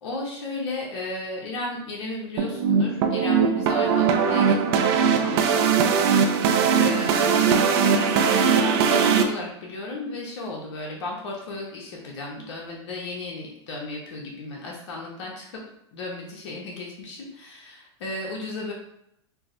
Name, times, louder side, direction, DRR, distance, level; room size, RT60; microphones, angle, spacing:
voice 1, 0.0-5.7 6.8-15.6 15.9-18.7, left 2 dB, 80° left, -2 dB, 0.8 m, -34 dB
sound 1, 2.4-9.2, right 6 dB, 60° right, 0.4 m, -20 dB
4.6 x 2.0 x 2.5 m, 0.78 s
hypercardioid pair, 110°, 15 cm